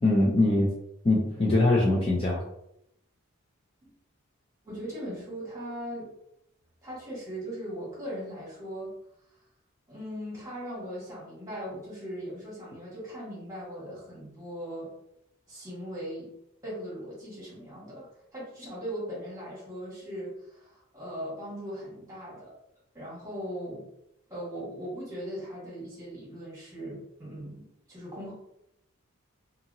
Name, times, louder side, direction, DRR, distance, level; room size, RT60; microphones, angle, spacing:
voice 1, 0.0-0.8 1.0-2.4, left 2 dB, 25° left, -4 dB, 0.4 m, -22 dB
voice 2, 4.6-6.1 6.8-9.0 9.9-14.9 15.5-16.3 16.6-22.5 22.9-23.9 24.3-28.3, equal, 15° right, -6 dB, 1.4 m, -39 dB
2.8 x 2.7 x 2.6 m, 0.80 s
head